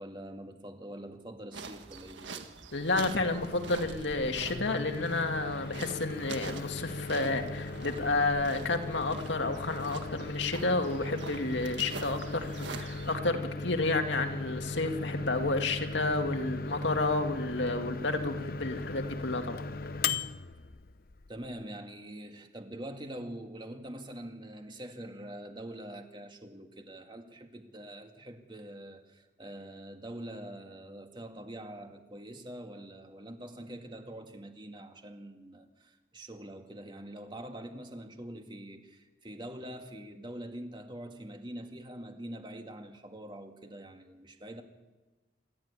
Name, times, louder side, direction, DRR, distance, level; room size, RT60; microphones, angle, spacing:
voice 1, 0.0-2.5 21.3-44.6, right 1 dB, 25° right, 4 dB, 2.2 m, -44 dB
sound 1, 1.5-13.2, right 4 dB, 80° right, 1.8 m, -46 dB
voice 2, 2.7-19.6, left 2 dB, 75° left, 5 dB, 2.2 m, -31 dB
Microwave oven, 2.8-21.6, left 3 dB, 50° left, 0.8 m, -38 dB
26.5 x 14.5 x 9.8 m, 1.2 s
head